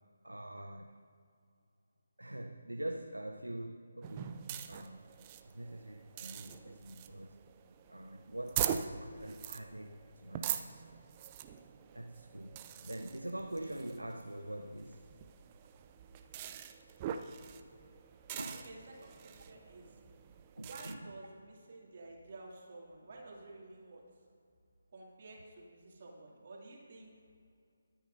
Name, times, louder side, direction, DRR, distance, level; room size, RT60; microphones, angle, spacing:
voice 1, 0.2-1.0 2.2-5.1 5.4-7.4 7.9-10.7 11.9-15.0 18.4-18.7 20.6-21.1, right 1 dB, 80° right, 4 dB, 0.7 m, -44 dB
sound 1, 4.0-21.0, right 9 dB, 20° right, 0.5 m, -43 dB
voice 2, 18.5-20.0 20.6-24.3 24.9-27.1, right 2 dB, 40° right, -2 dB, 2.7 m, -52 dB
23.0 x 9.0 x 2.7 m, 2.4 s
figure-of-eight pair, 150°, 0 cm